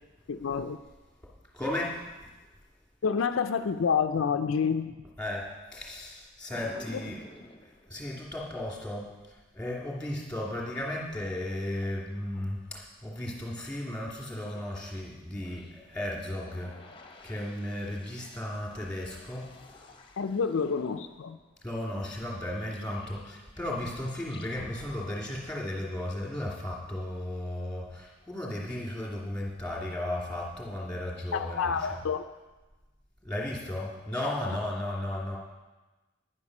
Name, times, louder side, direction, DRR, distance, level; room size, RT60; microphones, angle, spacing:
voice 1, 0.3-0.8 3.0-4.9 20.2-21.4 31.3-32.3, left 6 dB, 65° left, 8 dB, 0.4 m, -28 dB
voice 2, 1.5-2.0 5.2-5.4 5.7-7.2 7.6-16.7 17.2-19.9 21.6-32.0 33.2-35.4, left 1 dB, 5° left, -4 dB, 2.7 m, -35 dB
sound 1, 6.5-9.0 9.6-14.5 15.1-23.7 24.0-26.2, left 2 dB, 25° left, 0.9 m, -54 dB
10.5 x 9.6 x 6.1 m, 1.1 s
head